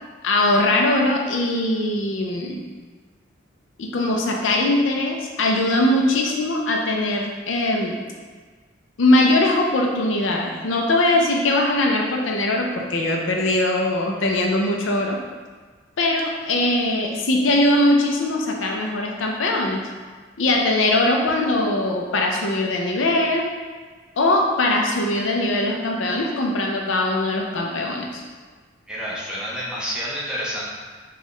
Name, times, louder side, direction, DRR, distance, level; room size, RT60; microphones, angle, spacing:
voice 1, 0.2-2.6 3.8-8.0 9.0-15.2 16.0-19.8 20.4-23.5 24.2-28.2, left 1 dB, 90° left, 1 dB, 0.6 m, -21 dB
voice 2, 28.9-30.7, equal, 5° right, -7 dB, 0.8 m, -29 dB
4.6 x 2.4 x 3.1 m, 1.5 s
head